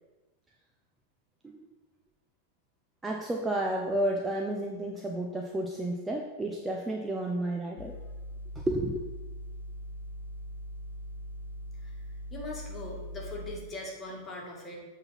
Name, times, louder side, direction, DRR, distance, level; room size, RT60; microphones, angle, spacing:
voice 1, 3.0-7.9 8.7-9.0, right 1 dB, 10° right, 1 dB, 0.7 m, -31 dB
sound 1, 7.8-13.6, equal, 75° left, 0.6 m, -41 dB
voice 2, 12.3-14.8, left 2 dB, 20° left, -3 dB, 2.3 m, -40 dB
7.9 x 4.1 x 5.9 m, 1.2 s
figure-of-eight pair, 90°, 0 cm